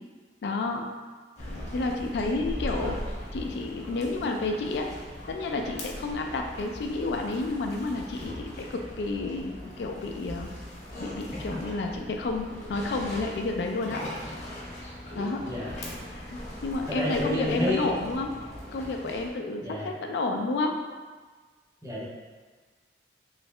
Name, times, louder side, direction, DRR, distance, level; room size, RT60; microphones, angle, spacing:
voice 1, 0.4-0.8 1.7-3.0 3.3-4.9 5.3-10.5 11.0-14.0 15.2-15.4 16.1-18.3 18.7-20.8, left 3 dB, 70° left, 3 dB, 0.3 m, -30 dB
sound 1, 1.4-19.3, left 1 dB, 40° left, 0.8 m, -40 dB
voice 2, 16.9-17.9 19.6-19.9 21.8-22.0, left 1 dB, 15° right, -6 dB, 0.7 m, -30 dB
3.1 x 2.7 x 3.2 m, 1.4 s
head